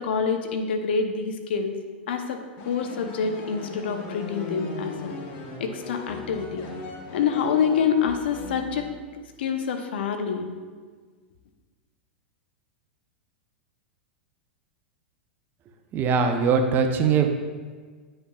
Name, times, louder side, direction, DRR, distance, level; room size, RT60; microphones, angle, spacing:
voice 1, 0.0-1.7 2.1-5.2 5.6-6.7 7.1-8.9 9.4-10.5, left 6 dB, 70° left, 6 dB, 0.7 m, -26 dB
sound 1, 2.6-9.2, left 3 dB, 45° left, 1.1 m, -38 dB
voice 2, 15.9-17.3, right 6 dB, 35° right, 5 dB, 0.7 m, -21 dB
8.2 x 5.5 x 2.3 m, 1.5 s
hypercardioid pair, 100°, 6 cm